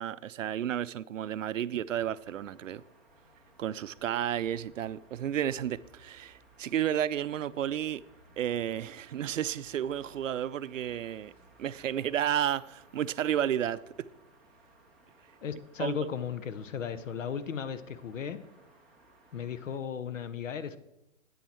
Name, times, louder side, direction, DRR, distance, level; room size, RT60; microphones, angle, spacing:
voice 1, 0.0-2.8 3.6-8.0 8.4-11.3 11.6-14.1 15.8-16.0, right 10 dB, 75° right, 0.5 m, -32 dB
sound 1, 2.0-19.8, right 1 dB, ahead, 0.5 m, -60 dB
voice 2, 15.4-18.4 19.3-20.8, left 7 dB, 70° left, 1.0 m, -35 dB
9.2 x 9.2 x 4.3 m
hypercardioid pair, 140°, 39 cm